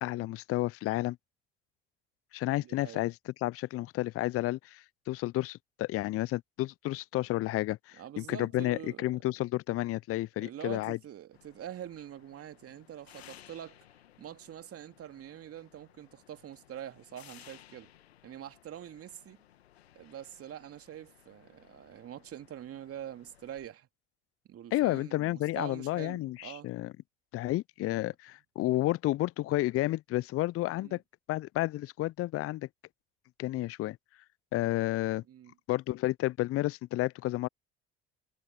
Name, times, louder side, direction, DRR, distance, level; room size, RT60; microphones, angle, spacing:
voice 1, 0.0-1.2 2.3-3.1 3.4-11.0 24.7-26.9 27.3-31.0 31.3-32.7 33.4-34.0 34.5-35.2 35.7-37.5, left 17 dB, 50° left, 0.6 m, -31 dB
voice 2, 2.6-3.1 8.0-9.0 10.4-13.8 14.2-17.9 18.2-19.4 19.9-23.9 24.5-26.7 30.8-31.0 35.3-35.5, right 10 dB, 50° right, 2.7 m, -45 dB
sound 1, 11.3-23.7, left 12 dB, 85° left, 1.8 m, -59 dB
figure-of-eight pair, 55°, 31 cm